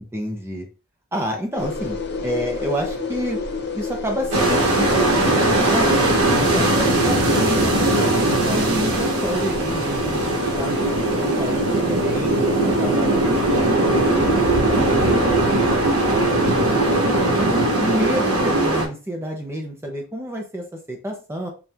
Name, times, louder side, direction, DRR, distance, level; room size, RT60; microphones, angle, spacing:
voice 1, 0.1-0.7 1.1-2.0 2.2-3.4 3.7-5.9 6.4-10.7 11.2-13.1 13.5-15.6 16.1-17.0 17.3-17.5 17.8-21.5, equal, 10° right, 1 dB, 0.5 m, -29 dB
sound 1, 1.5-16.9, left 3 dB, 45° left, 0.7 m, -31 dB
sound 2, 4.3-18.9, right 2 dB, 80° right, 1.2 m, -19 dB
4.3 x 2.3 x 3.4 m, 0.34 s
head